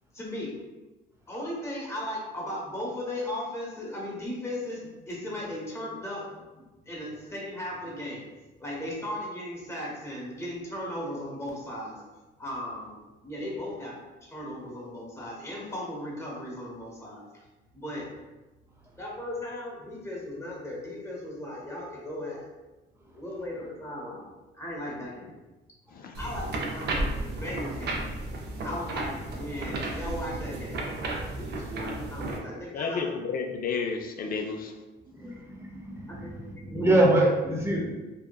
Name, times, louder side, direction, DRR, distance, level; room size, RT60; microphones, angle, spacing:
voice 1, 0.1-0.5 1.3-6.3 6.9-8.2 8.6-12.0 12.4-17.2 17.7-18.1 19.0-22.5 23.1-24.3 24.5-25.3 26.2-28.1 28.6-30.8 31.4-33.1 35.1-35.3 36.1-36.9, left 1 dB, 15° left, -4 dB, 0.9 m, -37 dB
sound 1, 26.1-32.4, right 2 dB, 55° right, 0.5 m, -33 dB
voice 2, 32.7-34.7, left 5 dB, 45° left, 3 dB, 0.4 m, -31 dB
voice 3, 35.2-36.3 36.6-37.9, right 1 dB, 15° right, -2 dB, 0.5 m, -24 dB
2.7 x 2.2 x 2.2 m, 1.1 s
cardioid pair, 90°, 20 cm